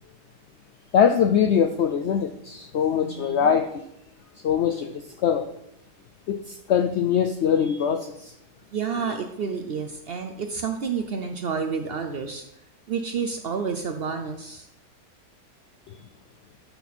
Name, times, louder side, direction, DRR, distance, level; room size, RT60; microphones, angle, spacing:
voice 1, 0.9-3.7 4.4-4.9 5.2-5.5 6.3-8.3, left 8 dB, 75° left, 7 dB, 0.6 m, -22 dB
voice 2, 3.0-3.6 8.7-12.4 12.9-14.7, right 6 dB, 70° right, 6 dB, 0.5 m, -30 dB
12.0 x 4.1 x 4.3 m, 0.80 s
omnidirectional pair, 1.7 m